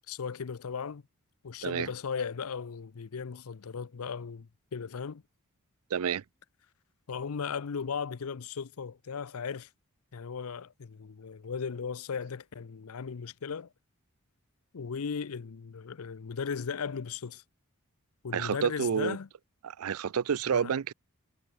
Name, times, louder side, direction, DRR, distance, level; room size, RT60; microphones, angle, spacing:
voice 1, 0.1-1.0 1.4-5.2 7.1-9.7 10.1-13.7 14.7-17.4 18.2-19.3 20.5-20.7, left 6 dB, 80° left, 0.6 m, -37 dB
voice 2, 5.9-6.2 18.3-19.2 19.6-20.9, right 7 dB, 80° right, 0.5 m, -29 dB
head